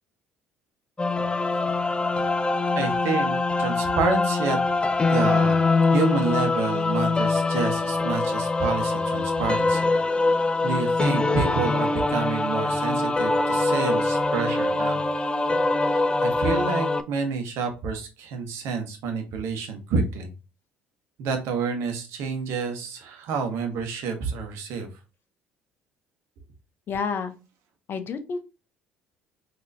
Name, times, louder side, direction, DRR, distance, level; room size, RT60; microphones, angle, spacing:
sound 1, 1.0-17.0, left 3 dB, 20° left, 0.4 m, -23 dB
voice 1, 2.7-4.6 5.1-5.6 5.9-10.0 10.6-15.1 15.9-20.3 21.2-24.9, right 5 dB, 65° right, 5 dB, 0.9 m, -29 dB
voice 2, 26.9-27.3 27.9-28.4, left 5 dB, 45° left, 8 dB, 0.8 m, -29 dB
4.0 x 2.8 x 2.6 m, 0.29 s
hypercardioid pair, 55°, 5 cm